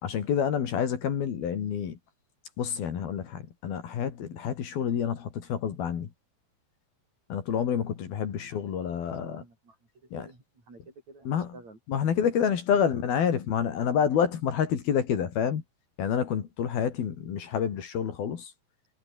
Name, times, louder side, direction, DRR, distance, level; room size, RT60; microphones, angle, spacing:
voice 1, 0.0-2.0 2.6-6.1 7.3-9.4 10.1-10.3 11.3-11.6 11.9-15.6 16.0-18.5, left 8 dB, 65° left, 4.3 m, -28 dB
voice 2, 8.9-9.8 10.0-12.8, right 3 dB, 40° right, 8.7 m, -51 dB
omnidirectional pair, 4.9 m